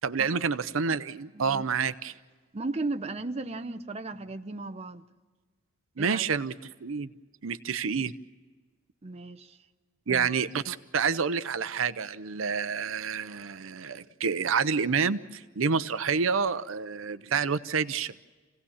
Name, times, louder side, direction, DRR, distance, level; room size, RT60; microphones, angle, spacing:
voice 1, 0.0-2.1 6.0-6.5 6.8-7.1 7.4-8.1 10.1-18.2, right 5 dB, 70° right, 0.6 m, -28 dB
voice 2, 1.3-1.7 2.5-5.0 6.0-6.2 9.0-9.7 10.1-10.3, right 3 dB, 30° right, 0.7 m, -36 dB
27.5 x 17.0 x 7.1 m
head